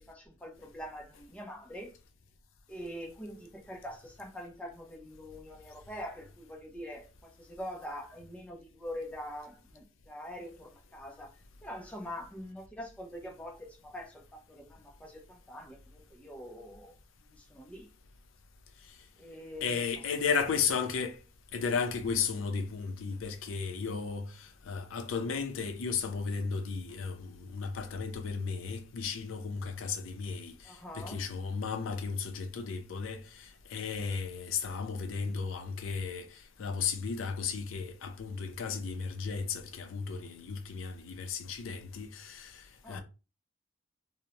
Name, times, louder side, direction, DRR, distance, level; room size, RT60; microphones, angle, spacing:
voice 1, 0.0-1.9 2.7-11.3 11.6-17.9 19.2-19.8 20.3-20.6 30.6-31.3 35.1-35.4 42.8-43.0, equal, 5° left, 0.5 m, -44 dB
voice 2, 19.6-21.2 21.5-36.3 36.6-43.0, left 5 dB, 85° left, 0.4 m, -34 dB
2.6 x 2.0 x 2.8 m
head